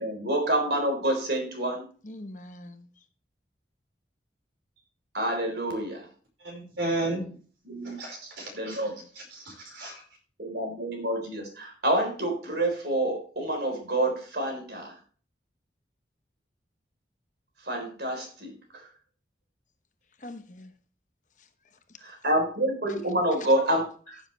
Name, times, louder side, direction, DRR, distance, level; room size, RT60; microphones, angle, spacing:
voice 1, 0.0-1.8 5.1-6.1 7.6-8.0 8.2-8.9 10.4-14.9 17.6-18.9 22.0-24.2, right 1 dB, 65° right, 4.0 m, -28 dB
voice 2, 2.0-3.0 20.2-20.7 21.4-22.0, left 1 dB, 45° left, 1.0 m, -44 dB
voice 3, 6.4-7.3 7.8-8.9 9.1-10.0, right 2 dB, 90° right, 5.0 m, -33 dB
14.5 x 7.4 x 3.3 m
head